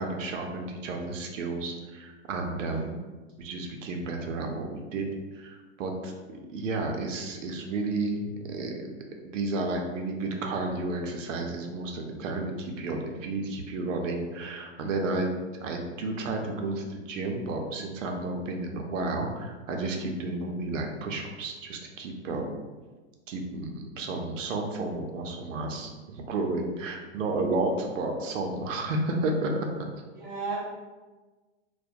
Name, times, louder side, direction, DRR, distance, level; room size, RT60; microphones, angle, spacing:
voice 1, 0.0-3.0 3.4-5.1 5.3-6.1 6.5-9.0 9.2-22.6 23.3-29.7, right 2 dB, 90° right, 2 dB, 0.6 m, -32 dB
voice 2, 30.1-30.6, right 4 dB, 20° right, -10 dB, 0.3 m, -35 dB
2.2 x 2.1 x 2.6 m, 1.3 s
supercardioid pair, 170°, 37 cm